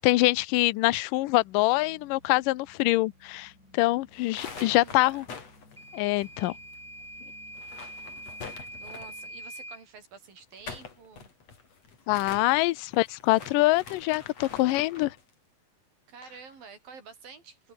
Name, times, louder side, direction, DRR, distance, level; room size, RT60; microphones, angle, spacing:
voice 1, 0.0-5.3 5.9-6.5 12.1-15.2, left 20 dB, 80° left, 2.3 m, -25 dB
sound 1, 1.2-9.5, left 2 dB, 20° left, 8.0 m, -59 dB
sound 2, 4.1-6.8 7.0-7.1 7.5-9.3 10.4-15.2, left 5 dB, 45° left, 4.7 m, -45 dB
voice 2, 4.4-5.3 8.8-11.3 16.1-17.7, right 5 dB, 75° right, 6.7 m, -48 dB
Microwave oven / Alarm, 5.8-9.9, equal, ahead, 3.1 m, -44 dB
omnidirectional pair, 4.1 m